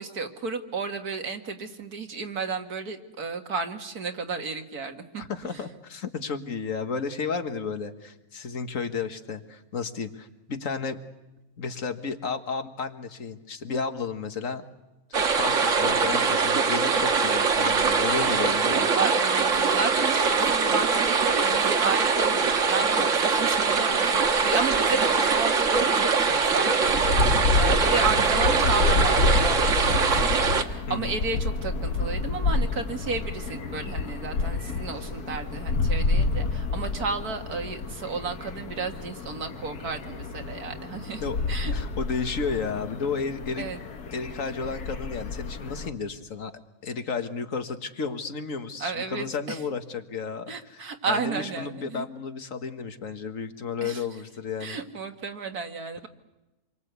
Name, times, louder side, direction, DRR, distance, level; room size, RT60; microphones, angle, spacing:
voice 1, 0.0-5.2 18.9-41.2 41.5-41.8 43.6-43.8 48.8-49.6 50.5-52.1 53.8-54.0 54.6-56.1, right 4 dB, 75° right, 5 dB, 2.3 m, -32 dB
voice 2, 5.2-11.0 11.6-14.6 15.2-18.9 30.9-31.2 41.2-41.4 41.7-43.7 44.1-46.5 46.8-54.8, left 5 dB, 60° left, 8 dB, 1.9 m, -33 dB
sound 1, 15.1-30.6, right 5 dB, 55° right, 1.7 m, -23 dB
sound 2, 26.9-45.9, left 3 dB, 80° left, 2.0 m, -29 dB
27.5 x 23.0 x 8.2 m, 1.0 s
omnidirectional pair, 1.6 m